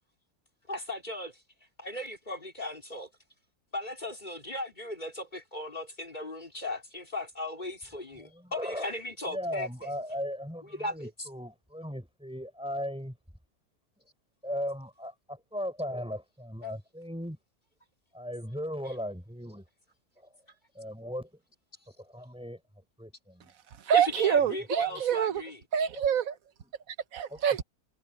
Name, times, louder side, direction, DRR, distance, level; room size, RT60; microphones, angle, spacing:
voice 1, 0.7-1.3 1.8-3.1 3.7-9.7 10.7-11.1 16.6-16.7 23.9-25.5, left 2 dB, 30° left, 4.2 m, -37 dB
voice 2, 8.1-8.9 9.3-13.2 14.4-17.4 18.1-19.6 20.2-20.3 20.7-21.3 22.0-22.6 23.0-23.5 24.9-25.0 27.3-27.4, equal, 5° right, 6.1 m, -37 dB
voice 3, 23.7-25.4 25.7-26.4 26.9-27.6, right 8 dB, 65° right, 1.4 m, -26 dB
omnidirectional pair, 1.6 m